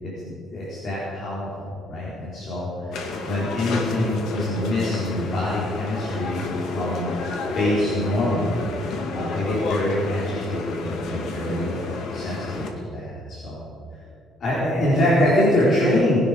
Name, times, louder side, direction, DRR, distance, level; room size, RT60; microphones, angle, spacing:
voice 1, 0.0-2.9 3.2-7.1 7.5-8.5 9.1-13.6 14.4-16.2, left 1 dB, 45° left, -7 dB, 4.3 m, -24 dB
sound 1, 2.9-12.7, left 3 dB, 75° left, 2.2 m, -31 dB
19.5 x 12.0 x 5.2 m, 2.4 s
cardioid pair, 150°, 0 cm